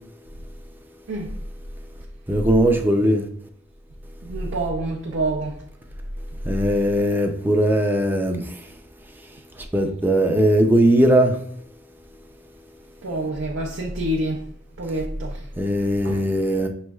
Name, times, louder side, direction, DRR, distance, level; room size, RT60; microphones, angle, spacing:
voice 1, 2.3-3.3 6.5-8.6 9.7-11.4 15.6-16.7, right 1 dB, 10° right, 0.4 m, -19 dB
voice 2, 4.2-5.7 13.0-14.4 14.8-15.5 15.8-16.2, right 1 dB, 85° right, 0.6 m, -27 dB
6.0 x 3.1 x 2.3 m
head